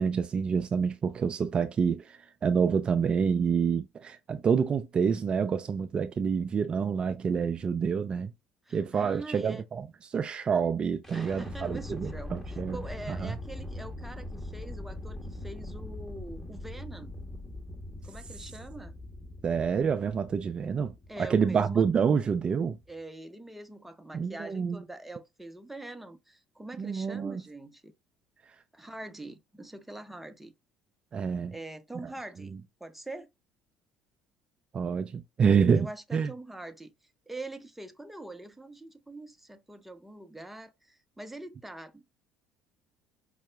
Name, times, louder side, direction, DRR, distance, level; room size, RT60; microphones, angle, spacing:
voice 1, 0.0-8.3 8.7-12.8 13.1-13.3 19.4-20.9 21.2-22.8 24.1-24.8 26.8-27.4 31.1-31.5 34.7-35.9 36.1-36.3, right 6 dB, 40° right, 0.3 m, -27 dB
voice 2, 8.7-9.7 11.1-17.1 18.0-18.9 21.1-22.0 22.9-27.9 28.7-30.5 31.5-32.5 32.8-33.3 35.7-36.9 37.3-42.0, right 2 dB, 5° right, 0.6 m, -44 dB
sound 1, 11.0-22.9, left 1 dB, 15° left, 1.1 m, -42 dB
5.3 x 2.0 x 2.4 m
hypercardioid pair, 65°, 3 cm